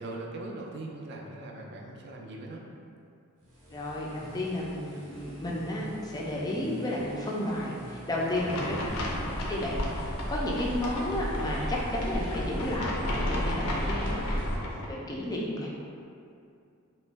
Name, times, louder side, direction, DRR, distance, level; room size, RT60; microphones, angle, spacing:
voice 1, 0.0-2.7 8.1-8.7 13.5-14.0, right 2 dB, 50° right, 0 dB, 0.4 m, -41 dB
sound 1, 3.4-12.7, equal, 85° right, 0.7 m, -48 dB
voice 2, 3.7-8.8 9.5-14.2 14.9-15.7, left 1 dB, 15° left, -3 dB, 0.4 m, -32 dB
sound 2, 8.3-14.9, left 1 dB, 80° left, 0.5 m, -35 dB
sound 3, 8.9-14.6, equal, 25° right, 0.7 m, -34 dB
2.9 x 2.1 x 3.3 m, 2.5 s
head